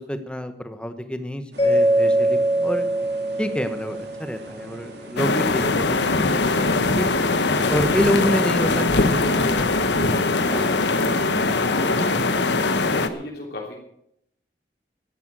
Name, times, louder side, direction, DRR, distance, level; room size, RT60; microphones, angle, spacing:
voice 1, 0.0-2.8 3.4-7.2 7.7-12.2, equal, 5° left, 9 dB, 1.1 m, -29 dB
sound 1, 1.5-11.4, equal, 80° right, 3.1 m, -42 dB
Mallet percussion, 1.6-4.6, right 1 dB, 30° left, 3.7 m, -22 dB
sound 2, 5.2-13.1, left 3 dB, 90° left, 1.2 m, -21 dB
voice 2, 12.4-13.7, left 2 dB, 65° left, -3 dB, 3.4 m, -37 dB
14.0 x 10.5 x 7.6 m, 0.76 s
head